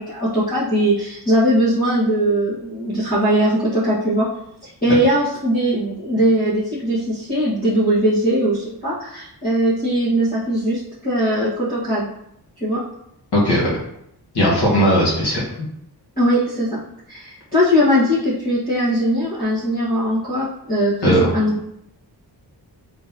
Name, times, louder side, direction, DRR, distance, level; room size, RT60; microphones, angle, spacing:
voice 1, 0.0-4.3 4.6-12.0 12.6-12.8 16.2-16.8 17.1-20.9 21.3-21.5, equal, 20° left, -12 dB, 1.4 m, -20 dB
voice 2, 13.3-13.7 14.3-15.4 21.0-21.3, equal, 75° left, -5 dB, 1.6 m, -17 dB
3.7 x 3.6 x 2.8 m, 0.77 s
wide cardioid pair, 90°, 40 cm